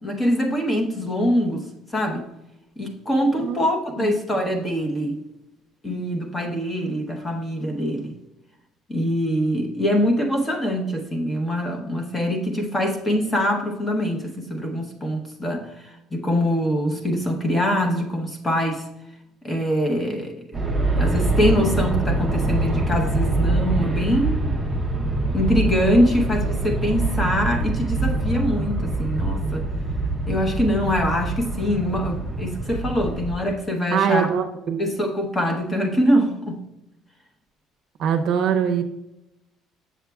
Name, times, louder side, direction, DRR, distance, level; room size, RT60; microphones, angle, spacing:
voice 1, 0.0-1.7 1.9-2.3 2.8-5.2 5.8-8.1 8.9-18.9 19.4-20.6 21.0-24.6 25.3-29.7 30.3-34.3 34.8-36.6, equal, 15° left, 3 dB, 0.9 m, -23 dB
Aircraft, 20.5-33.3, right 2 dB, 10° right, 0.6 m, -24 dB
voice 2, 33.9-34.8 38.0-38.8, right 7 dB, 60° right, 6 dB, 0.6 m, -22 dB
7.2 x 7.1 x 2.3 m, 0.91 s
cardioid pair, 150°, 0 cm